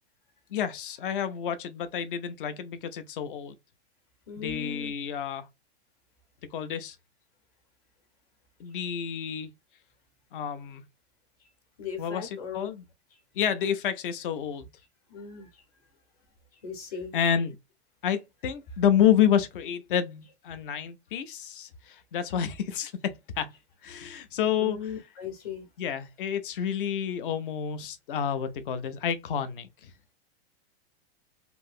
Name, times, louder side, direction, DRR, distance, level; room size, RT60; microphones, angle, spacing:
voice 1, 0.5-3.5 4.4-5.5 6.5-7.0 8.6-9.5 10.3-10.8 12.0-12.8 13.3-14.7 17.1-17.6 18.0-23.5 23.8-24.9 25.8-29.9, left 9 dB, 55° left, 0.6 m, -29 dB
voice 2, 4.3-4.9 11.8-12.7 15.1-15.6 16.6-17.1 24.6-25.7, left 7 dB, 35° left, 0.9 m, -38 dB
3.0 x 2.7 x 2.4 m
supercardioid pair, 175°, 32 cm